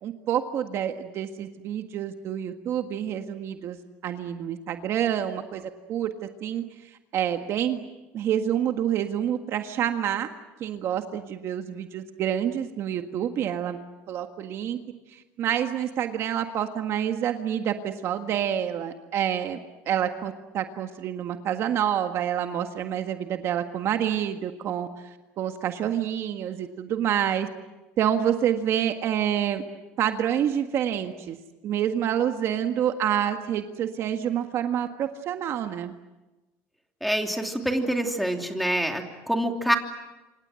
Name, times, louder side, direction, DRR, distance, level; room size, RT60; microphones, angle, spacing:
voice 1, 0.0-3.8 4.0-6.6 7.1-7.8 8.1-10.3 10.6-13.8 14.1-14.8 15.1-19.6 19.8-27.5 28.0-29.6 30.0-31.4 31.6-35.9, right 10 dB, 45° right, 6 dB, 1.7 m, -27 dB
voice 2, 37.0-39.8, right 1 dB, ahead, 4 dB, 2.9 m, -26 dB
27.0 x 26.5 x 7.8 m, 1.1 s
cardioid pair, 140°, 6 cm